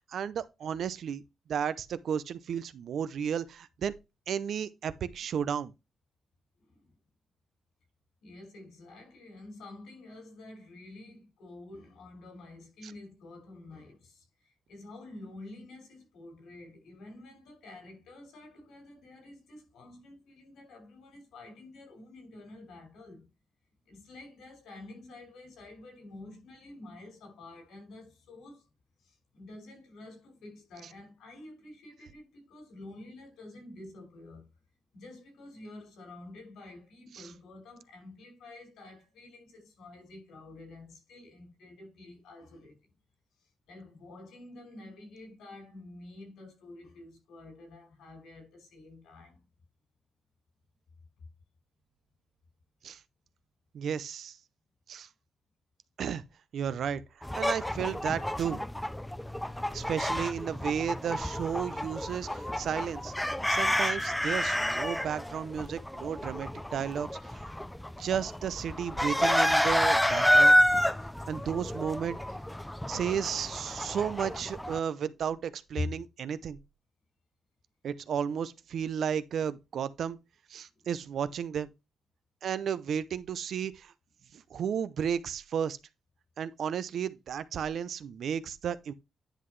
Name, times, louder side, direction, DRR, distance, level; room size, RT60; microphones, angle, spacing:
voice 1, 0.1-1.2 1.5-3.9 4.3-5.7 12.8-12.9 37.1-37.3 52.8-53.0 53.7-54.4 54.9-55.1 56.0-56.2 56.5-58.6 59.7-63.1 63.5-67.2 68.0-70.6 71.3-72.2 72.9-76.6 77.8-80.2 80.5-81.7 82.4-83.9 84.3-85.8 86.4-88.9, right 8 dB, 60° right, 0.6 m, -33 dB
voice 2, 6.6-6.9 8.2-23.3 23.9-28.7 29.0-34.5 34.9-42.8 43.7-49.4 75.8-76.0 80.8-80.9, left 2 dB, 85° left, 5.3 m, -48 dB
sound 1, 57.2-74.8, equal, 5° left, 0.4 m, -29 dB
10.0 x 5.7 x 3.2 m
cardioid pair, 130°, 0 cm